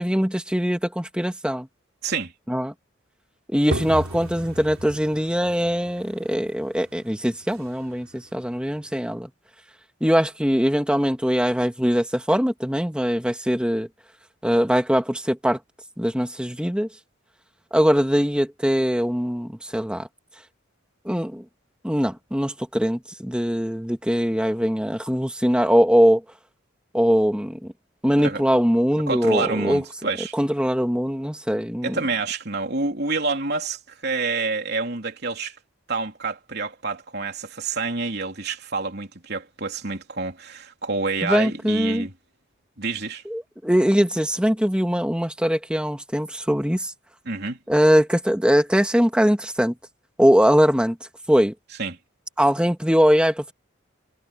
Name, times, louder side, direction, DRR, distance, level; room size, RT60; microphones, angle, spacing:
voice 1, 0.0-1.7 2.5-2.7 3.5-9.3 10.0-13.9 14.4-15.6 16.0-16.9 17.7-20.1 21.1-21.4 21.8-26.2 26.9-27.7 28.0-29.8 30.3-32.0 41.2-42.1 43.3-46.9 47.7-49.7 50.2-51.0 51.3-51.5 52.4-53.5, equal, 5° right, 2.0 m, -21 dB
sound 1, 3.7-9.2, right 1 dB, 90° right, 4.4 m, -36 dB
voice 2, 29.1-30.4 31.8-35.6 35.9-42.1 42.8-43.2 47.3-47.6 51.8-52.0, right 3 dB, 55° right, 3.6 m, -28 dB
head